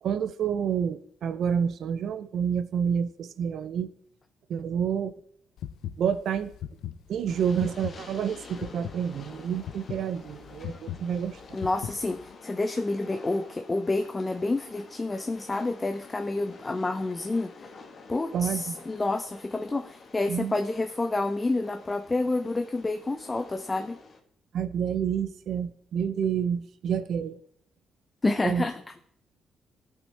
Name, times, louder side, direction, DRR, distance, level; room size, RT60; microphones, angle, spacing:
voice 1, 0.0-3.9 4.5-5.1 6.0-6.5 7.1-11.6 18.3-18.7 20.3-20.6 24.5-27.4 28.4-28.6, right 8 dB, 70° right, 14 dB, 0.5 m, -29 dB
sound 1, 5.6-12.3, left 10 dB, 80° left, 0.4 m, -39 dB
Train, 7.3-24.2, left 4 dB, 50° left, 1.2 m, -49 dB
voice 2, 11.5-17.5 18.1-24.0 28.2-28.8, left 2 dB, 20° left, 6 dB, 0.5 m, -29 dB
15.0 x 5.3 x 3.3 m, 0.66 s
cardioid pair, 90°, 0 cm